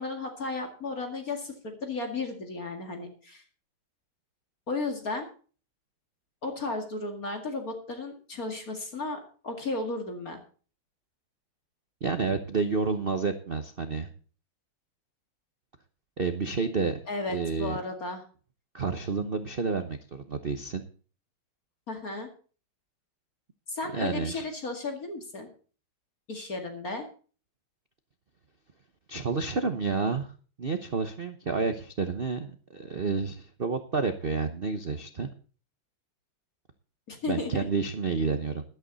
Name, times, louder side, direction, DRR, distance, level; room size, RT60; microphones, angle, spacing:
voice 1, 0.0-3.4 4.7-5.3 6.4-10.4 17.1-18.2 21.9-22.3 23.7-25.5 26.3-27.0 37.1-37.6, left 3 dB, 45° left, 4 dB, 2.5 m, -34 dB
voice 2, 12.0-14.1 16.2-17.0 17.3-17.8 18.7-20.8 23.9-24.4 29.1-30.3 30.6-35.3 37.3-38.6, right 4 dB, 45° right, 8 dB, 0.7 m, -30 dB
13.0 x 12.0 x 4.0 m, 0.39 s
omnidirectional pair, 2.3 m